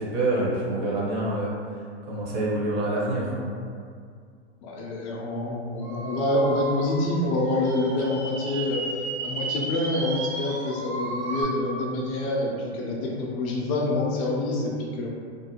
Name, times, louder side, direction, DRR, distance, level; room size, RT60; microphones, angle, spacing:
voice 1, 0.0-1.5 2.0-3.6, right 1 dB, 40° right, -5 dB, 0.7 m, -26 dB
voice 2, 4.6-15.1, left 1 dB, 30° left, -2 dB, 0.4 m, -27 dB
sound 1, 5.8-11.4, right 2 dB, 75° right, 1.3 m, -34 dB
2.5 x 2.1 x 2.8 m, 2.2 s
hypercardioid pair, 130°, 34 cm